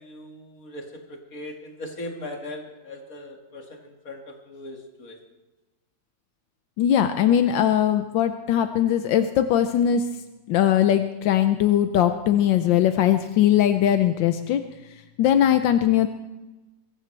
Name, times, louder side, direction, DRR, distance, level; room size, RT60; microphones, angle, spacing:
voice 1, 0.0-5.2, left 1 dB, 50° left, 2 dB, 2.5 m, -39 dB
voice 2, 6.8-10.0 10.5-14.6 15.2-16.1, left 10 dB, 85° left, 8 dB, 1.5 m, -20 dB
22.5 x 16.5 x 3.3 m, 1.1 s
omnidirectional pair, 2.0 m